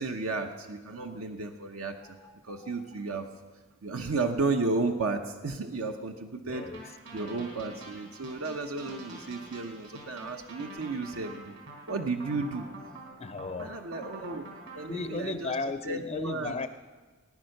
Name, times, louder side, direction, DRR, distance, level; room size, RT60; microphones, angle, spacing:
voice 1, 0.0-2.2 2.4-3.3 3.8-11.5 11.9-12.7 13.6-14.5 14.7-15.6 15.8-16.6, right 3 dB, 80° right, 5 dB, 0.9 m, -33 dB
voice 2, 2.0-2.9 6.5-6.8 12.3-12.4 13.2-13.9 14.9-16.7, left 3 dB, 30° left, 11 dB, 0.4 m, -36 dB
sound 1, 6.5-15.1, right 2 dB, 60° right, 4.1 m, -46 dB
18.5 x 9.7 x 6.5 m, 1.3 s
head